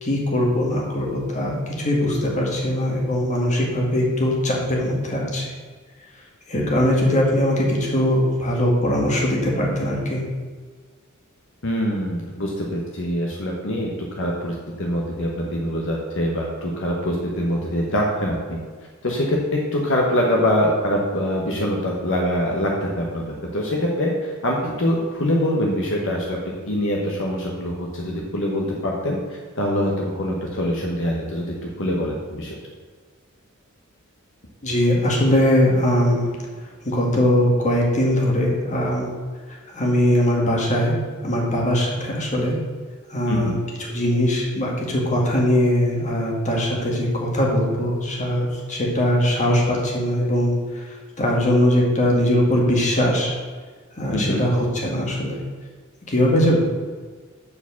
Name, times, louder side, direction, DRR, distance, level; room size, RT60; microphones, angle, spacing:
voice 1, 0.0-5.5 6.5-10.2 34.6-36.3 36.8-39.1 39.5-40.9 41.2-42.6 43.1-53.3 54.0-55.4 56.1-56.6, equal, 35° left, -2 dB, 1.8 m, -21 dB
voice 2, 11.6-13.9 14.2-18.6 19.0-23.2 23.5-32.6 43.3-43.5 54.1-54.5, equal, 60° left, -1 dB, 1.2 m, -24 dB
7.0 x 4.9 x 7.0 m, 1.5 s
head